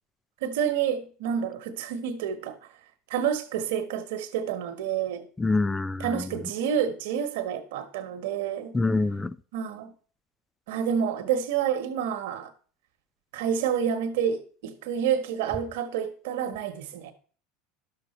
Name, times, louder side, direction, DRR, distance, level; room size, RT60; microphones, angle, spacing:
voice 1, 0.4-2.6 3.1-5.3 6.0-8.8 9.5-9.9 10.7-12.5 13.3-17.1, right 8 dB, 75° right, 1.3 m, -28 dB
voice 2, 5.4-6.3 8.7-9.4, left 3 dB, 15° left, 0.4 m, -26 dB
11.5 x 6.9 x 4.3 m
supercardioid pair, 105°, 0 cm